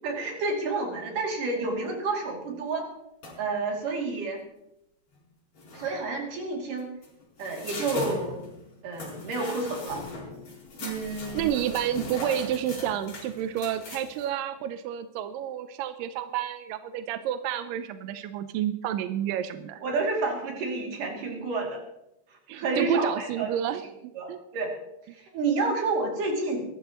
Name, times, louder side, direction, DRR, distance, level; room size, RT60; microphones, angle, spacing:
voice 1, 0.0-2.8 3.4-4.4 5.7-6.9 7.4-8.4 8.8-10.0 10.8-11.5 19.8-21.8 22.5-23.5 24.2-24.7 25.1-26.7, right 3 dB, 60° right, 0 dB, 4.1 m, -29 dB
sound 1, 3.2-3.6 5.2-5.3 5.5-6.0 6.8-14.3, left 2 dB, 45° left, 5.6 m, -40 dB
voice 2, 11.3-19.8 22.5-24.4, right 10 dB, 80° right, 10 dB, 2.0 m, -30 dB
22.0 x 12.5 x 3.0 m, 0.85 s
omnidirectional pair, 4.5 m